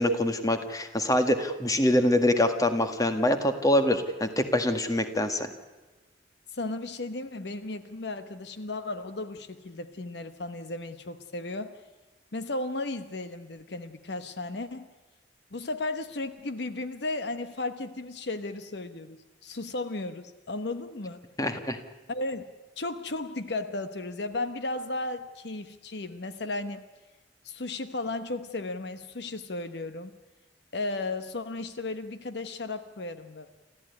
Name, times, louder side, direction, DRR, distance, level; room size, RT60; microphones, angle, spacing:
voice 1, 0.0-5.5 21.4-21.8, left 1 dB, 20° left, 7 dB, 1.8 m, -25 dB
voice 2, 6.5-11.8 12.3-14.9 15.5-21.2 22.1-22.4 22.8-26.8 27.4-30.1 30.7-33.5, left 2 dB, 65° left, 10 dB, 1.0 m, -35 dB
28.0 x 14.5 x 9.6 m, 1.2 s
head